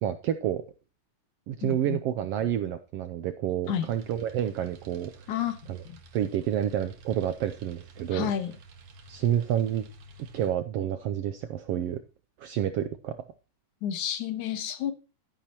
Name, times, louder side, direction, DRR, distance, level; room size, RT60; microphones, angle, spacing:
voice 1, 0.0-0.6 1.5-5.4 5.7-5.8 6.1-8.3 9.1-9.9 10.3-12.0 12.4-13.2, right 10 dB, 80° right, 9 dB, 1.4 m, -29 dB
voice 2, 1.6-2.0 3.7-3.9 5.3-5.6 5.9-6.0 8.1-8.5 13.8-14.9, left 9 dB, 80° left, 8 dB, 2.6 m, -30 dB
sound 1, 3.6-10.5, right 1 dB, 65° right, 2.4 m, -51 dB
12.0 x 10.5 x 2.9 m, 0.33 s
omnidirectional pair, 3.4 m